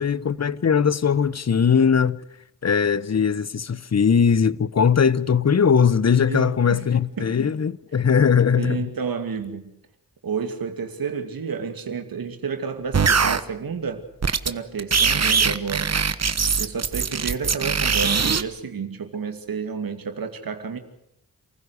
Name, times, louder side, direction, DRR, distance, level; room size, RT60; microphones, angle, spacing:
voice 1, 0.0-2.2 2.6-8.9, left 6 dB, 50° left, 0.9 m, -20 dB
voice 2, 6.3-6.9 7.2-7.5 8.6-9.7 10.2-14.0 14.4-16.0 16.6-20.8, right 5 dB, 90° right, 2.6 m, -30 dB
sound 1, 12.9-13.4 14.2-14.5 14.8-18.4, right 5 dB, 50° right, 1.2 m, -21 dB
28.5 x 15.5 x 8.3 m
cardioid pair, 65°, 34 cm